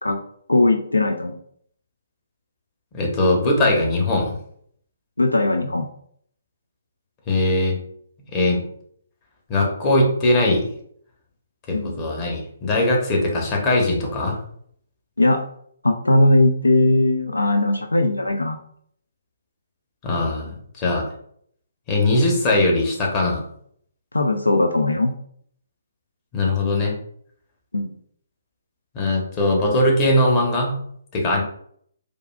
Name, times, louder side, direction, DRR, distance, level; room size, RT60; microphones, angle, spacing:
voice 1, 0.5-1.3 5.2-5.9 11.7-12.0 15.2-15.4 15.8-18.6 24.1-25.1 27.7-27.9, left 2 dB, 85° left, 6 dB, 0.3 m, -19 dB
voice 2, 2.9-4.3 7.3-7.8 8.3-8.6 9.5-10.6 11.7-14.4 20.0-21.1 21.9-23.4 26.3-26.9 28.9-30.8 31.1-31.4, left 1 dB, 25° left, -1 dB, 0.9 m, -20 dB
4.7 x 2.4 x 2.3 m, 0.65 s
figure-of-eight pair, 135°, 0 cm